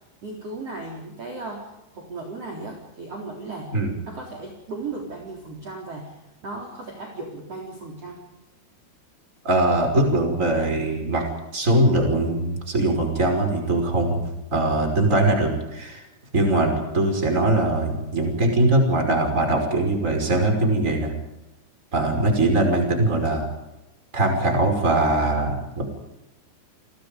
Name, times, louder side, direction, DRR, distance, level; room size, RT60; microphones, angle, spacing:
voice 1, 0.2-1.7 1.9-3.7 4.1-6.1 6.4-8.2, right 3 dB, 35° right, 0 dB, 4.4 m, -36 dB
voice 2, 9.4-11.2 11.5-16.0 16.3-21.1 21.9-23.5 24.1-25.8, right 2 dB, 15° right, 4 dB, 5.3 m, -21 dB
29.5 x 23.5 x 5.3 m, 0.94 s
omnidirectional pair, 5.6 m